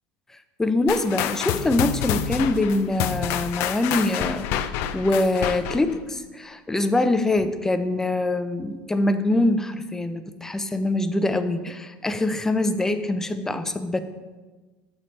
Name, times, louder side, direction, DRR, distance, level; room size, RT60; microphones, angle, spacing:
voice 1, 0.6-4.5 4.9-14.0, left 2 dB, 10° left, 9 dB, 0.5 m, -24 dB
sound 1, 0.9-6.0, left 10 dB, 65° left, 0.4 m, -28 dB
7.2 x 5.1 x 4.1 m, 1.3 s
supercardioid pair, 100°, 5 cm